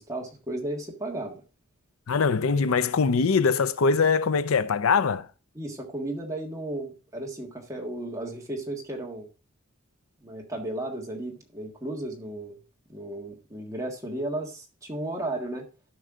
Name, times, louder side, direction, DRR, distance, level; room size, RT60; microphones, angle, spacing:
voice 1, 0.0-1.4 2.5-2.7 5.5-9.3 10.2-12.6 12.9-15.7, right 1 dB, 15° right, 1.6 m, -34 dB
voice 2, 2.1-5.3, left 5 dB, 70° left, 0.5 m, -22 dB
12.5 x 5.5 x 3.7 m
head